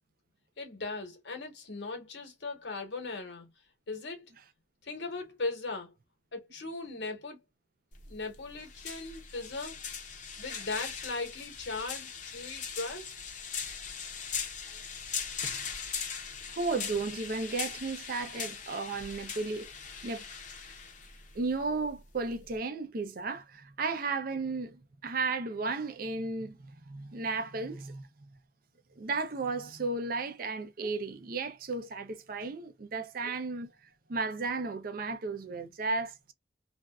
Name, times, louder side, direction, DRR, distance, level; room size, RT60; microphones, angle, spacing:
voice 1, 0.6-3.5 3.9-4.2 4.8-5.9 6.3-7.4 8.1-9.8 10.4-13.1, left 3 dB, 85° left, 1.1 m, -38 dB
sound 1, 7.9-22.6, left 6 dB, 45° left, 0.7 m, -40 dB
voice 2, 16.5-19.7 20.0-20.2 21.3-28.3 29.0-33.7 34.1-36.3, right 3 dB, 55° right, 0.5 m, -34 dB
2.5 x 2.2 x 2.2 m
head